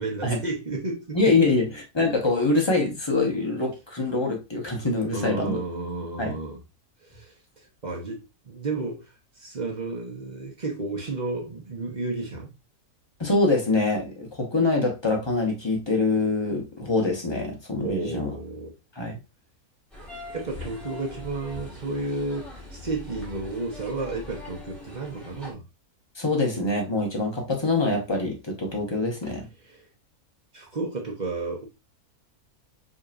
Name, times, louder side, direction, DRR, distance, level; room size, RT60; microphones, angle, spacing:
voice 1, 0.0-1.6 5.1-6.6 7.0-9.1 9.4-12.5 17.8-18.7 20.3-25.6 29.7-29.8 30.5-31.7, right 3 dB, 35° right, 0.9 m, -32 dB
voice 2, 1.1-1.7 1.9-5.6 6.2-6.4 13.2-18.3 19.0-19.2 26.1-29.5, left 3 dB, 20° left, 0.9 m, -24 dB
sound 1, 19.9-25.5, left 2 dB, ahead, 1.4 m, -41 dB
5.0 x 2.9 x 2.4 m
omnidirectional pair, 1.6 m